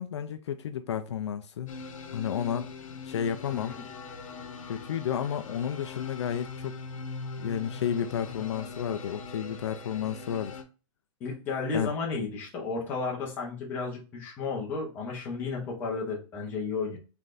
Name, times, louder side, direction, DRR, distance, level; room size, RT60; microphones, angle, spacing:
voice 1, 0.0-1.7 2.1-2.7 3.0-3.8 4.7-6.8 7.4-10.5 11.7-11.9, left 8 dB, 60° left, 0.4 m, -31 dB
sound 1, 1.7-10.6, left 4 dB, 80° left, 0.9 m, -42 dB
voice 2, 3.5-3.8 11.2-17.0, left 4 dB, 10° left, 0.8 m, -33 dB
3.9 x 3.2 x 2.5 m
hypercardioid pair, 180°, 17 cm